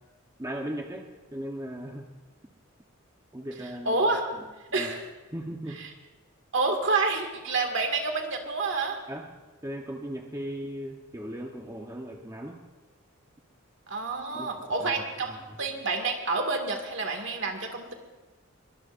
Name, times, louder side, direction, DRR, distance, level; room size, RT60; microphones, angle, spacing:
voice 1, 0.4-2.1 3.3-4.0 4.7-4.9 5.3-5.8 9.1-9.3 9.6-12.6 14.3-14.5 14.8-14.9 15.3-15.6, right 1 dB, 15° right, 1 dB, 1.0 m, -37 dB
voice 2, 3.9-4.3 4.7-5.1 5.7-5.9 6.5-9.0 13.9-17.9, right 3 dB, 60° right, 3 dB, 2.1 m, -28 dB
22.5 x 19.5 x 2.6 m, 1.2 s
head